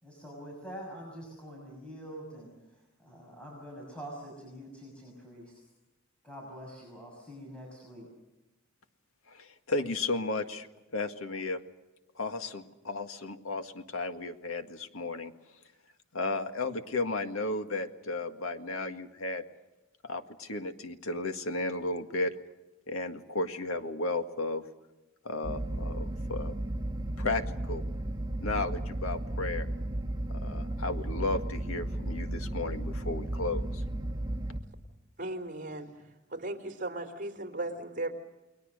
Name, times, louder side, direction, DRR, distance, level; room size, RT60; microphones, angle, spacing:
voice 1, 0.0-2.5 3.0-5.6 6.2-8.1, equal, 5° left, -1 dB, 6.4 m, -45 dB
voice 2, 9.3-10.7 10.9-11.6 12.2-15.3 16.1-19.4 20.0-22.3 22.9-24.6 25.2-26.5 27.2-27.8 28.4-29.7 30.3-33.8, left 2 dB, 85° left, 7 dB, 1.8 m, -34 dB
sound 1, 25.4-34.6, right 1 dB, 20° right, 1.6 m, -34 dB
voice 3, 35.2-35.9 36.3-38.1, right 2 dB, 40° right, 5 dB, 3.5 m, -36 dB
29.5 x 21.0 x 6.6 m, 1.0 s
head